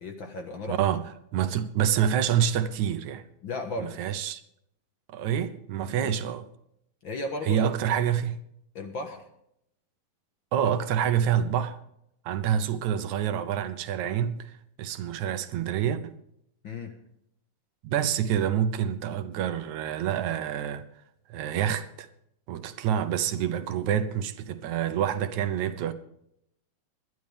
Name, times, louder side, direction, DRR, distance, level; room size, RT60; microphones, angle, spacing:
voice 1, 0.0-0.8 3.4-4.0 5.9-6.1 7.0-7.7 8.8-9.2 16.6-16.9, left 2 dB, 50° left, 1.8 m, -35 dB
voice 2, 0.7-1.0 1.3-3.2 3.8-4.4 5.1-6.5 7.4-8.4 10.5-11.8 12.3-14.5 14.8-16.2 17.8-20.8 21.3-22.1 22.5-25.9, right 9 dB, 75° right, 2.2 m, -27 dB
20.0 x 12.0 x 3.5 m
omnidirectional pair, 3.5 m